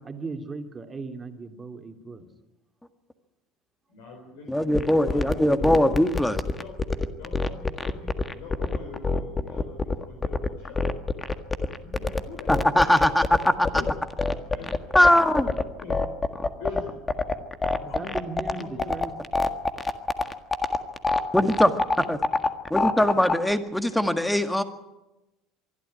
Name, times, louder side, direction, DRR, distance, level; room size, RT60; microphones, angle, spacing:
voice 1, 0.0-2.3 17.8-19.1, right 3 dB, 25° right, 5 dB, 2.7 m, -37 dB
voice 2, 3.9-5.8 6.6-6.8 7.1-10.8 11.8-12.5 13.0-13.1 13.7-13.9 14.5-14.7 15.4-16.0 16.3-17.0 17.3-17.5 17.9-19.0, left 5 dB, 70° left, 2 dB, 4.0 m, -43 dB
voice 3, 4.5-6.4 12.5-13.2 14.9-15.5 21.3-21.8 22.1-22.2 22.7-24.6, left 1 dB, 5° left, 9 dB, 1.9 m, -21 dB
sound 1, 4.7-23.5, left 3 dB, 20° left, 1.6 m, -25 dB
23.5 x 13.0 x 9.6 m, 1.0 s
hypercardioid pair, 70°, 0 cm